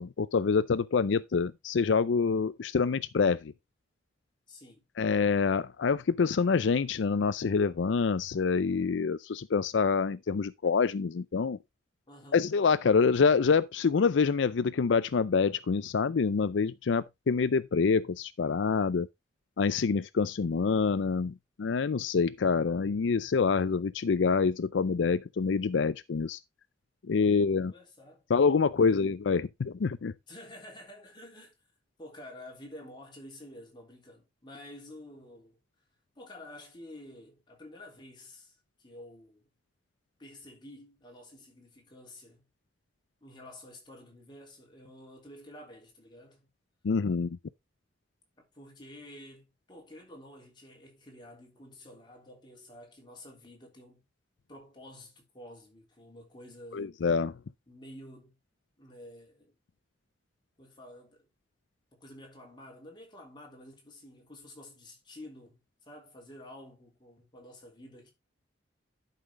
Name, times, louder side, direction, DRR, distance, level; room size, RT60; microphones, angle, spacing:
voice 1, 0.0-3.5 5.0-11.6 12.3-19.1 19.6-26.4 27.1-27.7 28.3-30.1 46.8-47.4 56.7-57.3, left 5 dB, 80° left, 0.5 m, -26 dB
voice 2, 4.5-4.8 12.1-12.5 27.2-28.2 28.7-29.0 30.3-31.5 32.0-35.6 36.1-39.5 40.2-42.5 43.2-46.5 48.4-54.0 54.5-56.9 57.7-58.4 58.8-59.5 60.6-61.3 61.9-68.1, left 1 dB, 25° left, 3.3 m, -50 dB
11.5 x 5.7 x 3.7 m
head